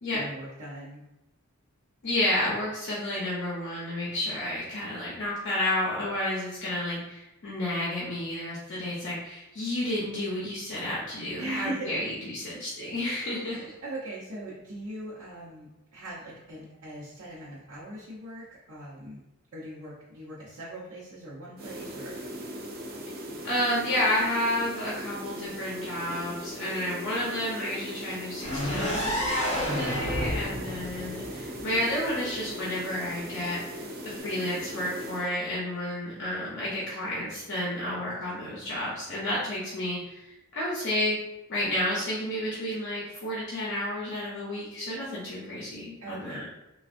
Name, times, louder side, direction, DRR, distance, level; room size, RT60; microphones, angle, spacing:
voice 1, 0.1-1.0 11.4-12.0 13.1-19.2 19.5-22.2 46.0-46.4, right 1 dB, 75° right, -9 dB, 0.7 m, -40 dB
voice 2, 2.0-13.7 23.4-41.2 41.5-46.5, left 1 dB, 60° left, -6 dB, 0.7 m, -31 dB
sound 1, 21.6-35.3, equal, 45° right, 0.5 m, -39 dB
sound 2, 28.4-32.3, equal, 35° left, 1.4 m, -31 dB
3.3 x 2.3 x 2.5 m, 0.95 s
head